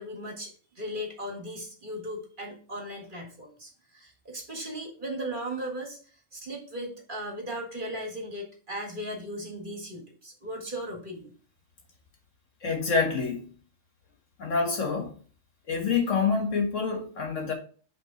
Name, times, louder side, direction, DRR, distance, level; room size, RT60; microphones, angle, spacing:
voice 1, 0.0-6.0 6.3-11.3, equal, 40° right, 1.8 m, -37 dB
voice 2, 12.6-13.4 14.4-15.1 15.7-17.5, left 5 dB, 75° left, 1.9 m, -27 dB
8.1 x 3.7 x 3.9 m
omnidirectional pair, 1.3 m